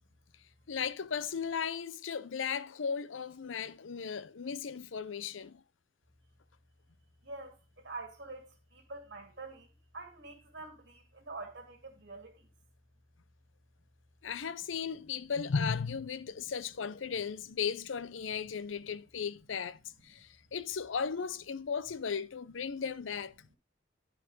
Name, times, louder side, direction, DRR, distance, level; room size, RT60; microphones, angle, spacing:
voice 1, 0.7-5.6 14.2-23.5, left 6 dB, 85° left, 0.6 m, -36 dB
voice 2, 7.2-12.5 23.5-23.6, right 3 dB, 60° right, 2.2 m, -46 dB
12.0 x 4.7 x 4.0 m
head